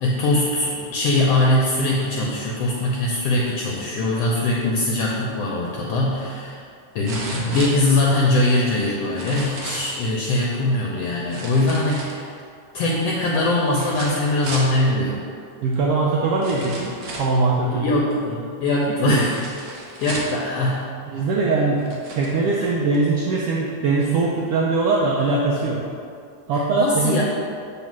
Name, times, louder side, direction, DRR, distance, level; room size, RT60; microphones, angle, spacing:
voice 1, 0.0-6.7 6.9-12.3 12.7-15.2 17.7-19.4 20.0-20.9 22.6-22.7 26.5-27.2, left 2 dB, 75° left, -3 dB, 1.6 m, -22 dB
sound 1, 5.7-5.8 7.0-8.3 9.0-10.0 11.3-12.5 13.7-14.7 15.7-15.8 16.4-17.4 19.3-20.4 21.2-21.3 21.8-22.4 22.9-23.0, right 2 dB, 60° right, 1.3 m, -34 dB
voice 2, 15.6-17.8 19.1-19.3 21.1-21.8 22.1-25.8 26.5-27.1, right 3 dB, 80° right, -3 dB, 1.3 m, -21 dB
8.3 x 3.7 x 5.9 m, 2.4 s
omnidirectional pair, 3.3 m